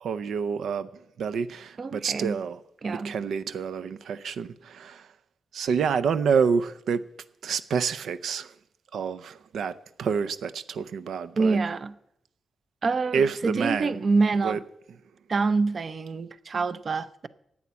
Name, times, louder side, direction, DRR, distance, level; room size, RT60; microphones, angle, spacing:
voice 1, 0.0-2.6 2.9-5.1 5.5-7.0 7.4-8.6 8.9-11.6 13.1-14.0 14.3-14.6, right 6 dB, 85° right, 0.6 m, -28 dB
voice 2, 1.8-2.4 2.8-3.1 11.4-11.9 12.8-14.6 15.3-17.3, right 4 dB, 45° right, 0.6 m, -26 dB
11.0 x 8.8 x 9.5 m
wide cardioid pair, 120°, 0 cm